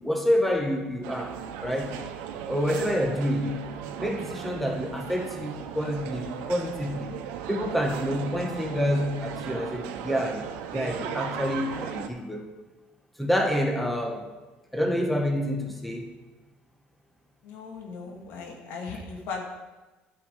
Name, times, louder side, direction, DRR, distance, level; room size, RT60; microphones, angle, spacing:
voice 1, 0.0-2.0 2.5-3.6 4.0-7.2 7.5-12.5 13.2-14.2 14.7-16.1, equal, 5° left, 3 dB, 1.2 m, -28 dB
sound 1, 1.0-12.1, right 8 dB, 85° right, 1.0 m, -37 dB
voice 2, 17.4-19.4, left 4 dB, 70° left, 1 dB, 2.2 m, -37 dB
9.4 x 6.6 x 6.6 m, 1.2 s
cardioid pair, 105°, 4 cm